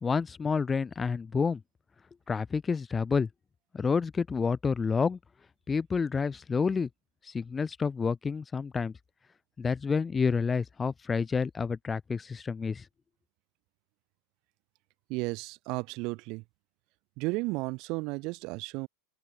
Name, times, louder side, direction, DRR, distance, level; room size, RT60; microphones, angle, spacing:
voice 1, 0.0-1.6 2.3-3.3 3.7-5.2 5.7-6.9 7.2-8.9 9.6-12.8, left 5 dB, 15° left, 0.4 m, -29 dB
voice 2, 15.1-16.4 17.2-18.9, right 25 dB, 50° right, 1.4 m, -33 dB
open air
supercardioid pair, 135°, 0 cm